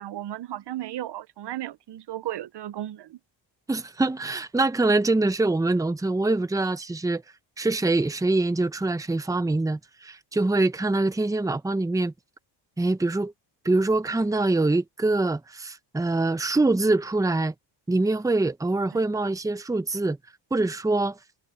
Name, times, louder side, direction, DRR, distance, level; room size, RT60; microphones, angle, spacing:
voice 1, 0.0-3.2, right 13 dB, 55° right, 0.9 m, -35 dB
voice 2, 3.7-7.2 7.6-12.1 12.8-13.3 13.6-17.5 17.9-20.2 20.5-21.2, right 2 dB, 5° right, 0.9 m, -24 dB
cardioid pair, 100°, 48 cm